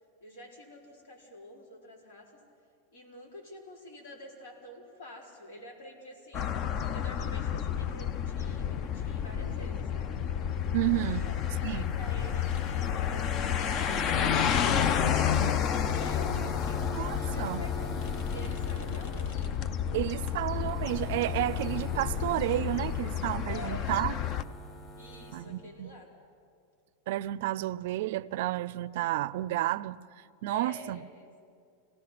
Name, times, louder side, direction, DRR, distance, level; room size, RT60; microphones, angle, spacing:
voice 1, 0.2-2.3 2.9-6.5 6.9-10.1 10.9-15.1 15.9-18.0 18.3-19.5 23.5-24.0 24.9-26.1 30.5-31.3, left 1 dB, 75° left, 4.7 m, -47 dB
sound 1, 6.3-24.4, left 8 dB, 35° left, 0.6 m, -30 dB
sound 2, 10.5-25.4, right 1 dB, 15° left, 6.5 m, -44 dB
voice 2, 10.7-11.2 11.6-12.0 16.9-17.6 19.9-24.2 25.3-25.9 27.1-30.0 30.4-31.0, right 16 dB, 65° right, 0.4 m, -31 dB
sound 3, 12.5-12.6 15.9-16.1 18.0-19.5, left 4 dB, 55° left, 1.8 m, -53 dB
26.0 x 17.5 x 5.9 m
supercardioid pair, 150°, 0 cm